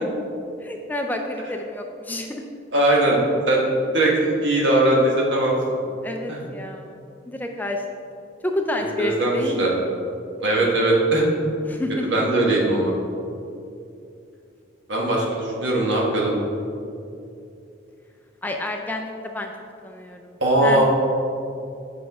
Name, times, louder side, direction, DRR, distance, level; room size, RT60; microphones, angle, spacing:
voice 1, 0.6-2.4 6.0-7.0 7.3-7.8 8.4-9.8 11.6-12.2 18.4-19.5 19.8-20.4 20.6-20.8, left 1 dB, 10° left, 3 dB, 0.3 m, -29 dB
voice 2, 2.7-3.2 3.5-5.6 6.3-6.4 8.8-9.7 10.4-11.2 12.1-12.9 14.9-16.3 20.4-20.8, right 1 dB, 65° right, -3 dB, 1.4 m, -20 dB
8.3 x 5.8 x 3.5 m, 2.6 s
head